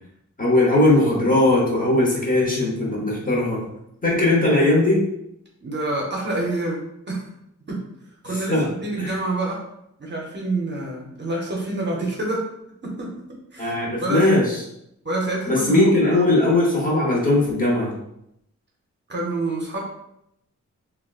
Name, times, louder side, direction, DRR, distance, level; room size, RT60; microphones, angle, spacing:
voice 1, 0.4-3.6 4.0-5.0 8.5-8.7 9.0-9.2 13.6-14.6 15.5-17.9, left 2 dB, 30° left, -3 dB, 0.8 m, -19 dB
voice 2, 5.6-7.3 7.7-7.8 8.2-9.6 10.0-12.5 12.8-13.1 13.5-14.4 15.0-16.3 19.1-19.8, right 2 dB, 40° right, -2 dB, 0.6 m, -27 dB
3.6 x 2.2 x 2.3 m, 0.79 s
wide cardioid pair, 150°, 30 cm